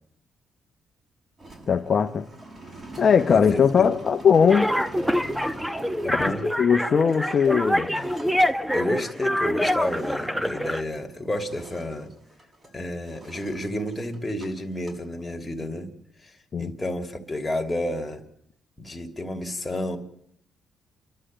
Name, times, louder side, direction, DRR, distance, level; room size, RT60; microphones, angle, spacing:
sound 1, 1.4-11.1 11.3-12.7 13.0-14.5 14.7-15.0, right 2 dB, 35° right, 6.5 m, -44 dB
voice 1, 1.7-2.3 3.0-4.7 6.2-8.1 16.5-16.7, left 6 dB, 45° left, 0.9 m, -20 dB
voice 2, 3.3-3.9 6.0-6.5 8.7-12.1 12.7-15.9 16.2-16.3 16.6-18.2 18.8-20.0, left 1 dB, 15° left, 2.8 m, -30 dB
playground Saint-Guinoux, 4.5-10.8, equal, 5° right, 1.0 m, -25 dB
28.5 x 11.5 x 8.9 m
cardioid pair, 90°, 0 cm